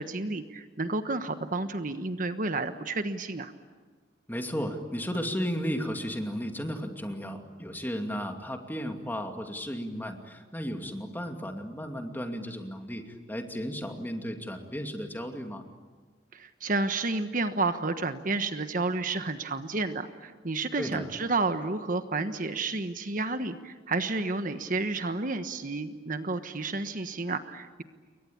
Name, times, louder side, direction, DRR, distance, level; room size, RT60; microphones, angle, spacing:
voice 1, 0.0-3.5 16.3-27.8, right 3 dB, 50° right, 9 dB, 1.3 m, -31 dB
voice 2, 4.3-13.0 13.3-15.6 20.8-21.1, equal, 10° left, 4 dB, 2.5 m, -34 dB
29.0 x 23.0 x 8.7 m, 1.4 s
head